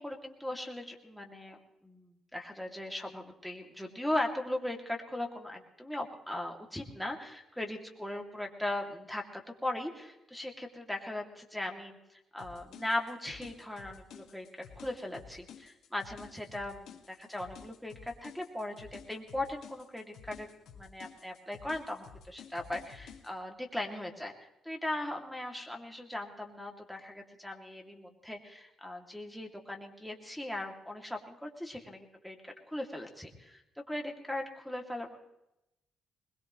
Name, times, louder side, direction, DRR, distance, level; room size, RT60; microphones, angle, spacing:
voice 1, 0.0-20.5 20.8-24.3 24.6-33.6 33.9-35.2, left 1 dB, ahead, 1 dB, 2.7 m, -39 dB
sound 1, 12.4-23.3, left 7 dB, 80° left, 1.8 m, -52 dB
22.0 x 20.5 x 3.2 m, 0.88 s
cardioid pair, 90°, 0 cm